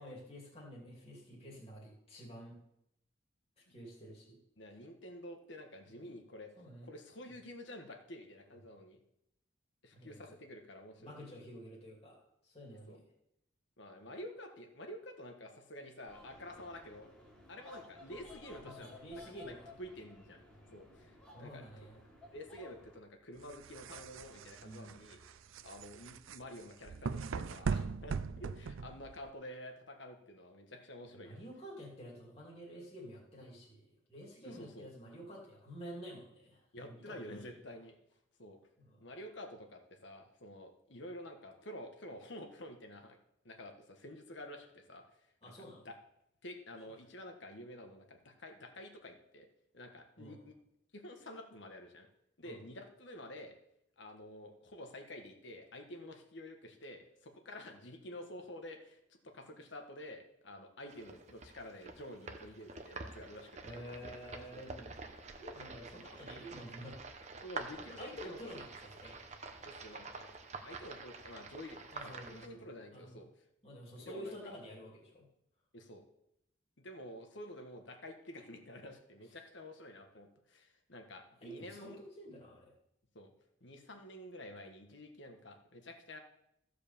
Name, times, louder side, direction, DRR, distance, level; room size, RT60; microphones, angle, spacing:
voice 1, 0.0-2.6 3.6-4.4 5.8-6.1 6.6-6.9 9.9-10.2 11.0-13.1 18.6-19.7 21.3-22.0 24.6-25.0 31.1-37.6 38.8-39.0 45.4-45.9 50.2-50.5 52.4-52.6 63.6-64.9 65.4-67.3 68.0-69.3 71.9-73.2 73.6-75.2 81.4-82.7, equal, 30° left, -4 dB, 2.6 m, -50 dB
voice 2, 4.6-6.5 6.8-9.0 9.8-11.1 12.9-13.0 13.8-17.1 17.5-18.9 19.8-20.4 20.7-21.6 22.3-25.2 25.6-31.4 34.4-34.9 36.7-37.9 38.4-38.6 39.0-43.2 43.4-45.0 45.8-46.0 46.4-49.5 49.7-50.5 50.9-52.1 52.4-53.6 54.0-63.8 64.5-64.7 67.4-68.4 69.6-70.3 70.6-73.3 73.9-74.5 75.7-76.0 76.8-82.0 83.1-83.3 83.6-86.2, left 1 dB, 65° left, 4 dB, 1.5 m, -49 dB
sound 1, 16.1-23.0, left 2 dB, 5° left, 2.0 m, -56 dB
sound 2, 23.4-29.3, right 5 dB, 80° right, 0.5 m, -40 dB
sound 3, 60.9-72.5, right 3 dB, 35° right, 0.9 m, -48 dB
14.5 x 5.0 x 6.9 m, 0.81 s
head